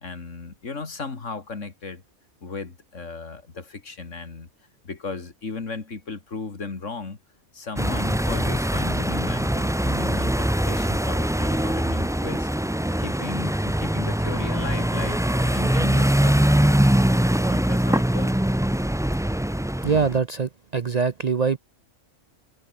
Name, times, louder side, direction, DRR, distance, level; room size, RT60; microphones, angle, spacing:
voice 1, 0.0-2.0 2.4-4.5 4.8-7.2 7.5-12.5 13.0-17.1 17.4-18.3, left 4 dB, 80° left, 2.9 m, -36 dB
sound 1, 7.8-20.2, right 1 dB, 5° right, 0.4 m, -22 dB
sound 2, 10.6-16.1, left 2 dB, 50° left, 4.7 m, -51 dB
voice 2, 19.8-21.6, right 5 dB, 40° right, 0.6 m, -23 dB
omnidirectional pair, 1.3 m